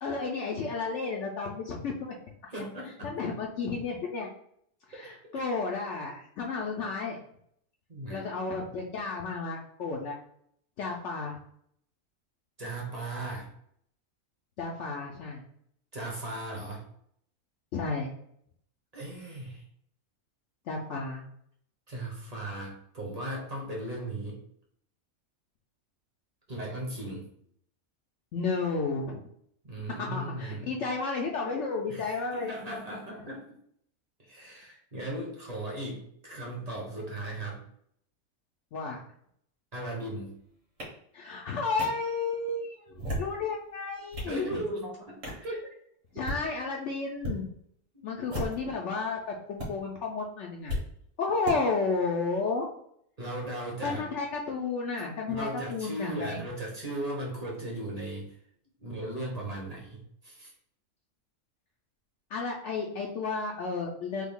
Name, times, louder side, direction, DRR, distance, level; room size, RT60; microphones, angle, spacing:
voice 1, 0.0-2.2 3.0-4.3 4.9-7.2 8.1-10.2 10.8-11.4 14.6-15.4 17.7-18.1 20.7-21.2 28.3-29.2 30.0-32.6 38.7-39.0 41.1-44.6 46.1-47.5 48.0-50.8 51.2-52.7 53.8-56.4 62.3-64.3, left 4 dB, 65° left, -1 dB, 0.8 m, -32 dB
voice 2, 2.5-3.1 5.0-5.1 7.9-8.3 12.6-13.5 15.9-16.8 18.9-19.6 21.9-24.4 26.5-27.3 29.6-30.8 31.9-33.6 34.2-37.6 39.7-40.4 44.2-45.7 47.9-48.1 53.2-54.1 55.3-58.3 58.8-60.5, right 1 dB, 35° right, -2 dB, 0.8 m, -37 dB
sound 1, 40.8-40.9 41.8-41.9 42.9-43.4 43.9-44.4 45.2-45.4 46.1-46.4 47.2-47.4 48.2-48.7 49.6-49.7 50.7-50.8 51.4-51.6, equal, 65° right, 1.6 m, -34 dB
3.3 x 2.3 x 3.5 m, 0.68 s
omnidirectional pair, 1.4 m